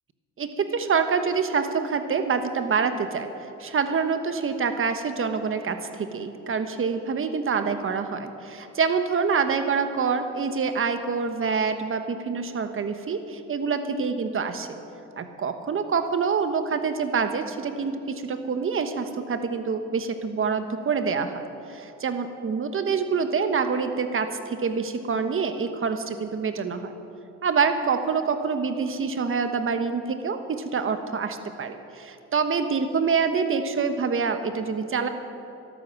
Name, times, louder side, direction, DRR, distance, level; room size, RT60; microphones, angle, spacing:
voice 1, 0.4-3.3 3.6-14.8 15.2-26.9 27.4-35.1, right 5 dB, 45° right, 8 dB, 1.3 m, -26 dB
12.5 x 12.0 x 7.4 m, 2.9 s
cardioid pair, 90°, 30 cm